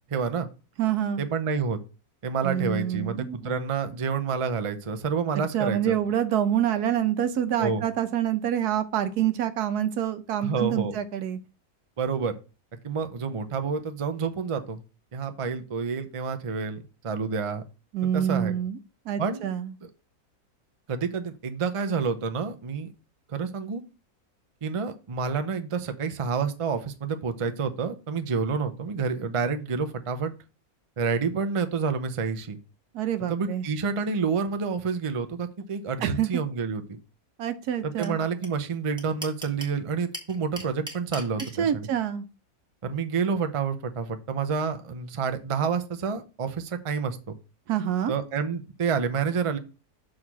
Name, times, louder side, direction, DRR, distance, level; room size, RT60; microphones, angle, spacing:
voice 1, 0.1-0.5 1.2-1.8 2.2-5.9 7.6-7.8 10.4-11.0 12.0-12.3 12.8-14.8 15.1-17.6 18.1-18.6 19.2-19.5 19.8-19.9 20.9-22.9 23.3-23.8 24.6-30.3 31.0-32.6 33.3-36.8 37.8-41.9 42.8-47.2 48.1-49.6, right 5 dB, 40° right, 9 dB, 0.4 m, -28 dB
voice 2, 0.8-1.3 2.4-3.6 5.3-11.4 17.9-18.8 19.1-19.7 32.9-33.6 36.0-36.4 37.4-38.2 41.6-42.2 47.7-48.1, right 10 dB, 85° right, 10 dB, 1.3 m, -27 dB
sound 1, 38.0-38.1 38.4-38.5 38.7-39.7 40.1-41.5, right 1 dB, 5° right, 1.5 m, -36 dB
6.4 x 3.7 x 5.9 m, 0.33 s
omnidirectional pair, 1.6 m